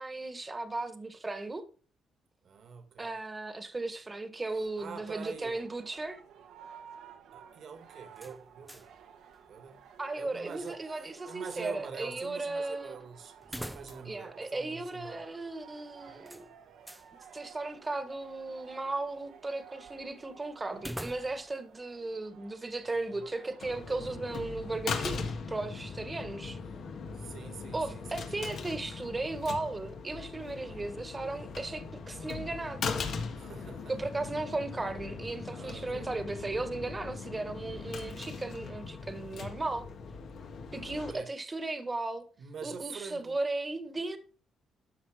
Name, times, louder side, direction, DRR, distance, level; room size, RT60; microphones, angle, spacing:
voice 1, 0.0-1.7 3.0-6.2 10.0-12.9 14.0-16.5 17.3-26.6 27.7-32.9 33.9-39.9 40.7-42.2 42.6-44.2, right 2 dB, 20° right, 1.5 m, -36 dB
voice 2, 2.4-3.1 4.5-5.6 7.3-8.9 9.5-9.8 10.2-15.2 16.1-16.2 22.9-23.2 27.1-28.4 30.5-30.8 33.3-33.9 35.5-36.1 40.7-41.3 42.4-43.4, right 6 dB, 60° right, 1.9 m, -45 dB
sound 1, 4.5-23.9, right 7 dB, 80° right, 1.4 m, -54 dB
sound 2, 8.1-9.0 9.3-9.4 13.4-14.3 14.6-14.7 16.3-17.1 20.7-21.6, equal, 5° right, 0.5 m, -44 dB
sound 3, 23.6-41.1, left 5 dB, 65° left, 1.7 m, -40 dB
13.0 x 4.9 x 4.9 m
cardioid pair, 90°, 0 cm